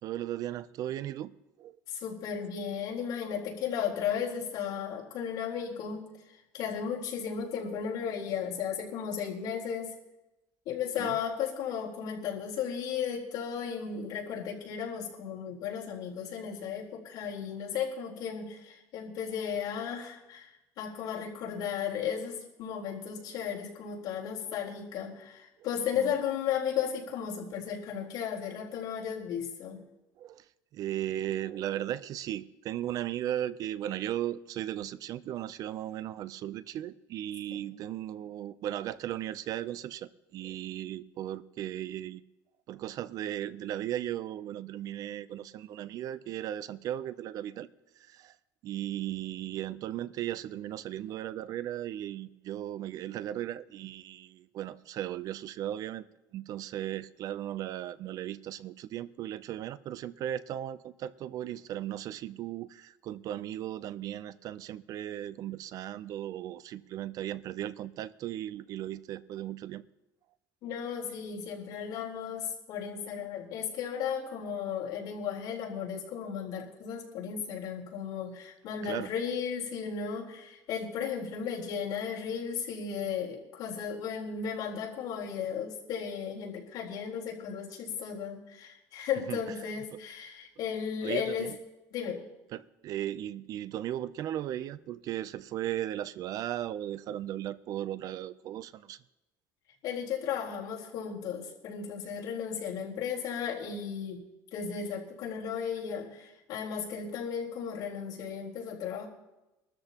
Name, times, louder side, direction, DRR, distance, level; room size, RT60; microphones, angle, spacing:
voice 1, 0.0-1.3 1.6-1.8 11.0-11.1 26.0-26.1 30.2-30.5 30.7-42.2 42.7-47.7 48.0-48.4 48.6-56.1 56.3-69.8 78.8-79.1 89.3-89.4 91.0-91.6 92.5-99.0, right 12 dB, 55° right, 0.5 m, -36 dB
voice 2, 1.9-9.9 10.7-29.8 37.5-37.7 70.6-91.5 91.9-92.2 99.8-104.2 104.5-109.1, left 7 dB, 65° left, 3.9 m, -35 dB
23.5 x 13.0 x 3.0 m
cardioid pair, 135°, 7 cm